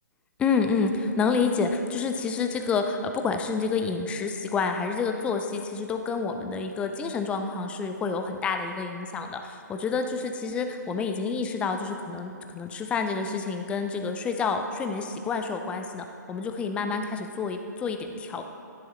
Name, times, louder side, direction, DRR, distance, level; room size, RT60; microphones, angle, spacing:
voice 1, 0.4-18.4, left 5 dB, 10° left, 6 dB, 0.6 m, -28 dB
12.5 x 10.5 x 3.2 m, 2.5 s
figure-of-eight pair, 140°, 10 cm